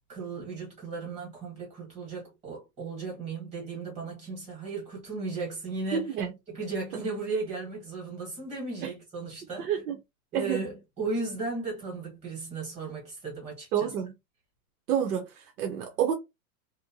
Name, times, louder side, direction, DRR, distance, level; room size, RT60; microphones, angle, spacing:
voice 1, 0.1-6.1 6.5-9.8 10.3-13.9, right 3 dB, 15° right, 1.0 m, -36 dB
voice 2, 5.9-6.3 9.6-10.0 10.3-10.7 13.7-14.1 14.9-16.2, right 8 dB, 75° right, 0.8 m, -29 dB
2.7 x 2.1 x 2.7 m
supercardioid pair, 170°, 46 cm